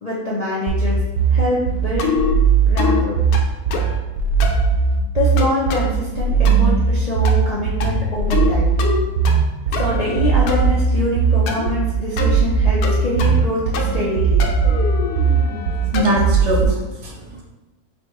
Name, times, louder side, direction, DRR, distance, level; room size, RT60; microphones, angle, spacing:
voice 1, 0.0-1.0 1.3-2.2 2.7-3.2 5.1-8.7 9.7-14.5, left 1 dB, 45° left, -6 dB, 0.5 m, -25 dB
sound 1, 0.7-16.7, right 5 dB, 80° right, 1.2 m, -18 dB
sound 2, 2.0-2.4 2.8-3.0 3.3-4.0 4.4-4.7 5.4-5.9 6.4-6.8 7.2-7.5 7.8-8.5 8.8-9.4 9.7-10.6 11.5-11.7 12.2-12.4 12.8-13.5 13.7-14.1 14.4-16.2, left 5 dB, 75° left, 1.0 m, -25 dB
voice 2, 15.9-17.4, equal, 55° right, -1 dB, 0.9 m, -22 dB
4.2 x 3.4 x 3.1 m, 1.1 s
omnidirectional pair, 1.7 m